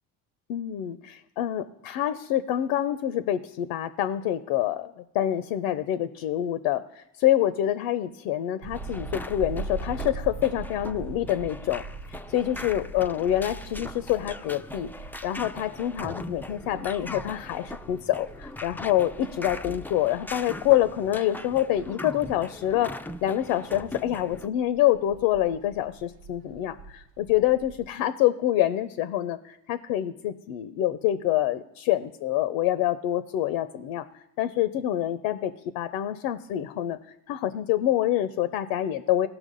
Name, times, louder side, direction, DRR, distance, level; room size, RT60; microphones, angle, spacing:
voice 1, 0.5-11.8 12.3-14.9 15.2-22.9 23.2-34.0 34.4-37.0 37.3-39.3, left 12 dB, 75° left, 13 dB, 0.6 m, -26 dB
sound 1, 8.6-22.9 23.2-27.9, right 4 dB, 75° right, 0.7 m, -42 dB
sound 2, 8.7-24.5, left 2 dB, 5° left, 0.4 m, -40 dB
16.5 x 5.9 x 3.9 m, 0.82 s
hypercardioid pair, 65°, 39 cm